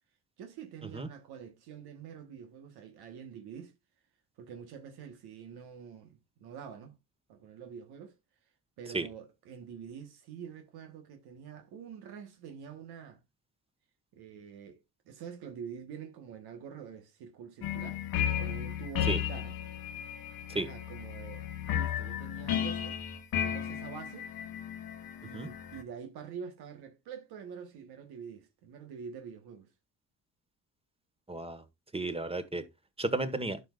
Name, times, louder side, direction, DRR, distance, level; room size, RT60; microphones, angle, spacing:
voice 1, 0.4-3.7 4.4-7.0 7.3-8.1 8.8-13.2 14.1-18.0 18.4-19.6 20.5-21.4 21.7-23.0 23.4-24.3 25.2-29.7, right 7 dB, 80° right, 1.3 m, -46 dB
sound 1, 17.6-25.8, left 10 dB, 65° left, 1.1 m, -34 dB
voice 2, 31.3-31.6 31.9-32.6 33.0-33.6, right 2 dB, 15° right, 1.3 m, -33 dB
11.5 x 5.2 x 2.3 m
supercardioid pair, 70°, 38 cm